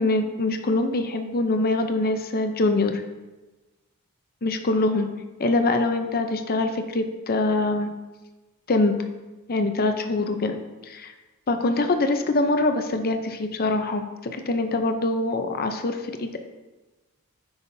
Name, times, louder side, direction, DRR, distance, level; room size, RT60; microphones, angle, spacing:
voice 1, 0.0-3.0 4.4-5.1 5.4-7.9 8.7-9.0 9.5-10.6 10.9-11.1 11.5-14.0 14.3-16.4, left 2 dB, 45° left, 7 dB, 0.7 m, -24 dB
9.7 x 5.6 x 2.7 m, 1.2 s
head